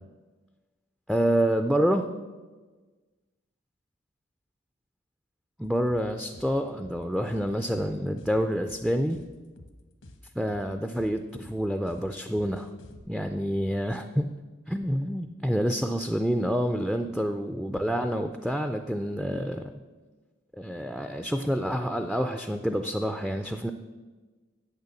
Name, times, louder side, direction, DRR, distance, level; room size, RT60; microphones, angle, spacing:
voice 1, 1.1-2.1 5.6-9.2 10.4-12.7 13.1-14.3 14.7-19.7 20.6-23.7, equal, ahead, 7 dB, 0.3 m, -28 dB
sound 1, 5.6-13.0, left 1 dB, 85° left, 1.1 m, -50 dB
8.3 x 6.6 x 7.0 m, 1.3 s
head